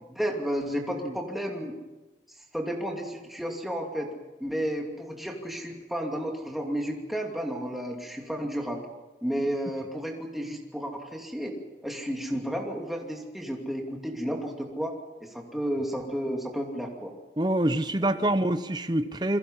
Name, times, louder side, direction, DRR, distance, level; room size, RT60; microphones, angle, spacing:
voice 1, 0.1-1.7 2.5-4.1 4.4-8.8 9.2-11.5 11.8-14.9 15.2-17.1 18.0-18.3, equal, ahead, 0 dB, 2.7 m, -32 dB
voice 2, 17.4-19.4, right 1 dB, 25° right, 10 dB, 0.9 m, -26 dB
28.5 x 22.0 x 5.6 m, 1.1 s
head